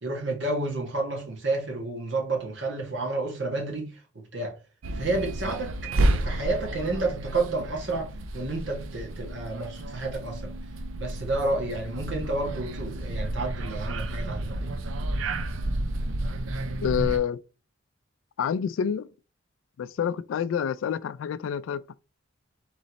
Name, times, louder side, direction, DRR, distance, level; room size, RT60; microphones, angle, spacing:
voice 1, 0.0-4.5 4.9-5.9 6.2-10.6 11.0-14.7, right 2 dB, 65° right, 1.5 m, -30 dB
sound 1, 4.8-17.2, right 1 dB, 85° right, 0.5 m, -31 dB
voice 2, 16.8-17.4 18.4-19.1 19.8-21.9, left 8 dB, 80° left, 0.3 m, -28 dB
3.9 x 3.1 x 3.9 m
head